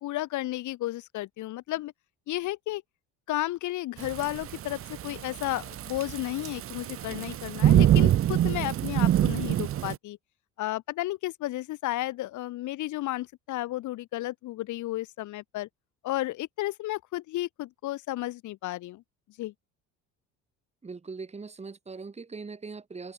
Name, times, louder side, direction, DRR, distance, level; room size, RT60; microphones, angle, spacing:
voice 1, 0.0-1.9 2.3-2.8 3.3-10.2 10.6-15.7 16.0-19.0 19.4-19.5, left 16 dB, 60° left, 1.2 m, -33 dB
Thunderstorm / Rain, 4.0-10.0, right 12 dB, 40° right, 0.8 m, -25 dB
voice 2, 20.8-23.1, right 4 dB, 20° right, 3.6 m, -40 dB
cardioid pair, 125°, 34 cm